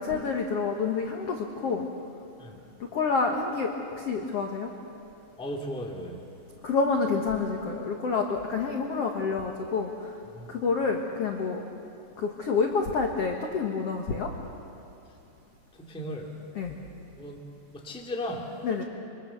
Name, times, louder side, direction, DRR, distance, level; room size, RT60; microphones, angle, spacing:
voice 1, 0.0-1.9 2.8-4.7 6.6-10.2 10.5-11.6 12.2-14.5 16.5-16.8 18.6-18.8, left 4 dB, 70° left, 2 dB, 1.4 m, -28 dB
voice 2, 5.4-6.2 10.3-10.6 15.8-16.3 17.2-17.4 17.7-18.5, equal, ahead, 0 dB, 1.2 m, -36 dB
27.0 x 24.5 x 7.0 m, 2.7 s
omnidirectional pair, 5.0 m